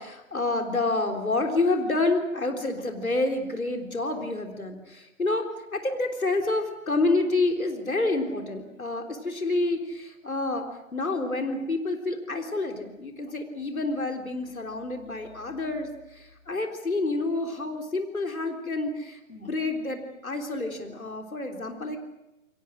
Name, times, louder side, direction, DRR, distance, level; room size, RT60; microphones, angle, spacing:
voice 1, 0.0-10.7 10.9-22.0, left 2 dB, 80° left, 3 dB, 3.7 m, -28 dB
28.0 x 23.0 x 6.4 m, 0.93 s
figure-of-eight pair, 130°, 41 cm